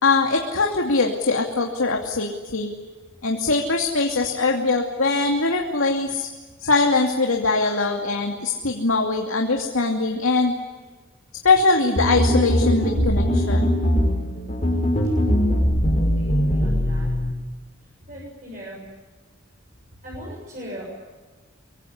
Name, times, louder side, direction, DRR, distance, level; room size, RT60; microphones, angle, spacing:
voice 1, 0.0-2.7 3.2-6.3 6.6-10.5 11.4-13.7, left 3 dB, 90° left, 1 dB, 2.7 m, -22 dB
sound 1, 12.0-17.3, equal, 35° left, 6.2 m, -21 dB
voice 2, 16.2-17.1 18.1-18.8 20.0-20.9, equal, 40° right, -4 dB, 7.5 m, -38 dB
24.5 x 24.0 x 9.9 m, 1.3 s
head